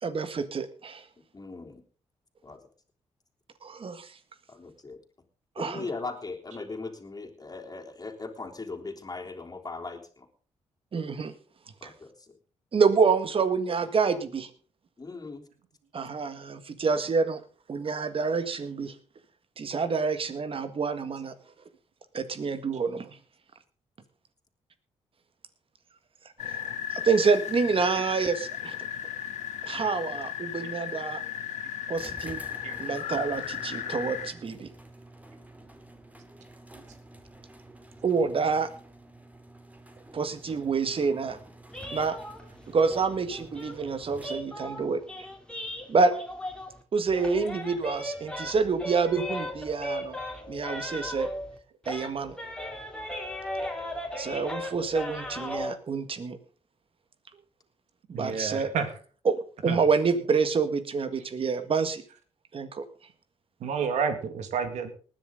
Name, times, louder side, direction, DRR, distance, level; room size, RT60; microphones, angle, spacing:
voice 1, 0.0-1.0 3.6-4.1 5.5-5.9 10.9-11.3 11.8-11.9 12.7-14.5 15.9-17.4 17.7-18.9 19.6-21.3 22.1-23.2 26.4-28.8 29.6-31.2 31.9-32.4 32.8-34.7 38.0-38.7 40.1-41.4 41.9-42.2 42.7-45.0 45.9-46.1 46.9-50.2 50.5-51.3 51.8-52.4 54.2-56.4 58.1-58.7 59.2-62.0 62.5-62.8, right 5 dB, 50° right, 11 dB, 1.8 m, -27 dB
voice 2, 1.3-1.8 2.4-2.6 4.5-5.0 5.6-10.3 11.8-12.4 15.0-15.5, left 3 dB, 30° left, 1 dB, 3.4 m, -39 dB
sound 1, 26.4-34.3, left 10 dB, 85° left, 2.0 m, -35 dB
sound 2, 31.9-44.7, right 1 dB, 10° right, 2.4 m, -50 dB
sound 3, 41.7-46.8 47.1-51.6 51.8-55.7, left 1 dB, 10° left, 3.0 m, -37 dB
voice 3, 58.1-58.9 59.7-59.8 63.6-64.9, right 6 dB, 85° right, 9 dB, 2.0 m, -30 dB
19.5 x 10.5 x 3.8 m, 0.39 s
cardioid pair, 70°, 12 cm